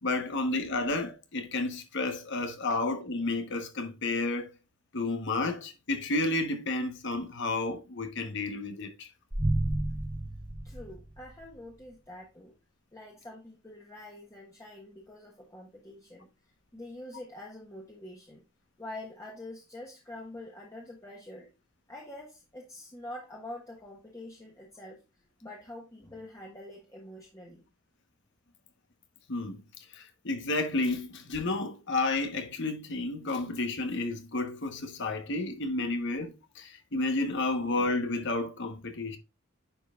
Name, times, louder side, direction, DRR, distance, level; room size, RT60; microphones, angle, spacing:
voice 1, 0.0-4.5 4.9-9.1 29.3-29.6 29.9-39.2, left 2 dB, 55° left, 1.1 m, -31 dB
sound 1, 9.3-11.6, right 1 dB, 15° right, 0.9 m, -31 dB
voice 2, 10.6-12.5 12.9-16.3 16.7-18.4 18.8-21.5 21.9-25.0 25.4-27.6, left 1 dB, 15° left, 1.4 m, -45 dB
10.0 x 5.2 x 2.4 m
head